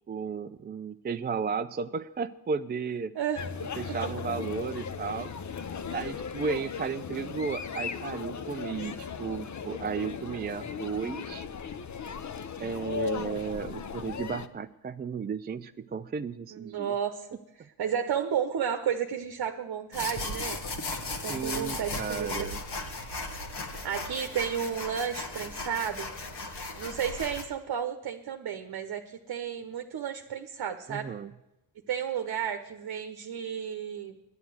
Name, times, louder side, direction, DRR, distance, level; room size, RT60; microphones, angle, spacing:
voice 1, 0.1-3.1 3.8-5.3 5.9-11.4 12.6-16.9 21.3-22.6 30.9-31.3, right 5 dB, 20° right, 9 dB, 0.4 m, -34 dB
voice 2, 3.1-3.5 3.9-4.0 16.5-17.3 17.8-20.6 21.2-22.5 23.6-26.1 26.8-31.1 31.9-34.1, right 8 dB, 50° right, 7 dB, 1.0 m, -32 dB
sound 1, 3.4-14.5, left 6 dB, 35° left, 0.8 m, -37 dB
sound 2, 19.9-27.4, left 3 dB, 55° left, 1.7 m, -36 dB
10.0 x 9.3 x 7.7 m, 0.93 s
supercardioid pair, 65°, 49 cm